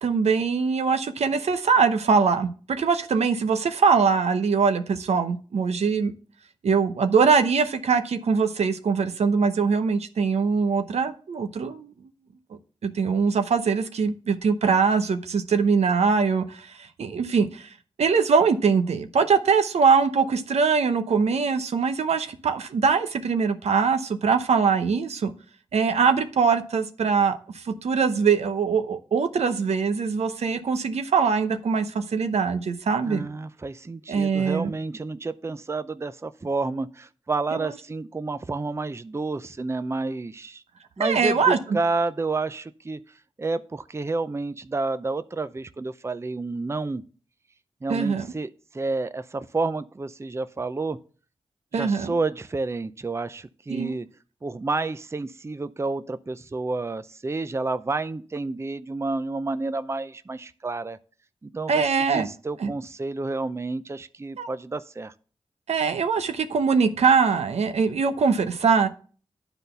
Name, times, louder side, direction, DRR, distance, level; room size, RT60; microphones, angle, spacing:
voice 1, 0.0-6.1 6.6-11.9 12.8-17.7 18.0-25.3 25.7-33.3 34.1-34.7 37.6-37.7 41.0-41.6 47.9-48.3 51.7-52.1 53.7-54.0 61.7-62.3 62.6-62.7 64.4-64.5 65.7-68.9, right 5 dB, 80° right, 8 dB, 0.8 m, -22 dB
voice 2, 33.0-40.6 41.0-47.0 47.8-51.0 51.7-54.1 54.4-61.0 61.4-65.1, right 3 dB, 25° right, 13 dB, 0.5 m, -30 dB
9.9 x 4.0 x 6.8 m, 0.40 s
cardioid pair, 50°, 11 cm